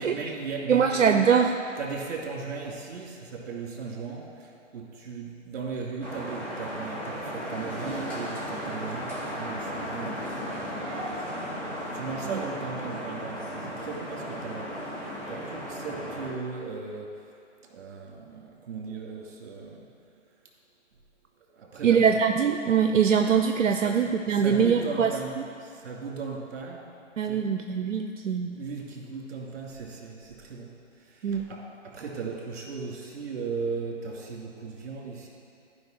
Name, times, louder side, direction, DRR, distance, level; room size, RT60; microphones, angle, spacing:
voice 1, 0.0-1.1 1.8-10.9 11.3-15.0 15.3-17.2 17.7-19.9 21.6-22.2 23.7-24.0 24.3-26.8 27.2-27.5 28.5-30.7 31.0-35.3, right 4 dB, 55° right, -2 dB, 2.7 m, -37 dB
voice 2, 0.7-1.6 21.8-25.1 27.2-28.5 31.2-31.5, right 7 dB, 85° right, 6 dB, 0.6 m, -22 dB
sound 1, 6.0-16.3, equal, 5° left, 2.1 m, -35 dB
15.0 x 5.3 x 4.6 m, 2.6 s
hypercardioid pair, 140°, 38 cm